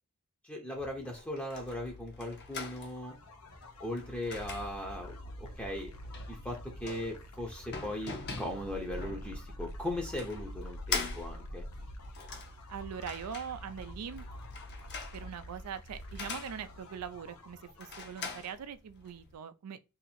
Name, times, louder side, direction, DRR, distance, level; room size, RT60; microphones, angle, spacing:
voice 1, 0.4-3.2 3.8-5.9 6.3-11.6, left 1 dB, 5° left, 0.6 m, -38 dB
sound 1, 0.7-19.3, left 5 dB, 50° left, 0.7 m, -44 dB
sound 2, 2.5-18.2, equal, 90° left, 0.8 m, -46 dB
voice 2, 12.7-14.2 15.1-19.8, right 7 dB, 90° right, 0.4 m, -42 dB
2.8 x 2.6 x 4.1 m
head